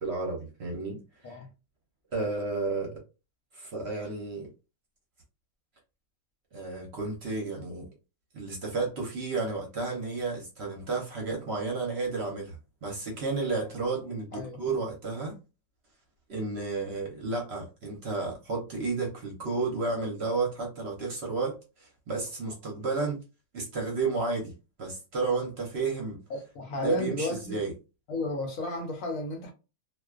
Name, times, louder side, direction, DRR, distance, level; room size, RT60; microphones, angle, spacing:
voice 1, 0.0-1.0 1.3-1.4 2.1-3.0 3.5-4.5 6.5-7.9 8.3-15.4 16.3-23.2 23.5-24.5 24.8-26.2 26.8-27.7, right 3 dB, 55° right, 0.8 m, -32 dB
voice 2, 26.3-27.6 28.1-29.5, left 2 dB, 70° left, 1.0 m, -33 dB
2.4 x 2.1 x 2.3 m
omnidirectional pair, 1.5 m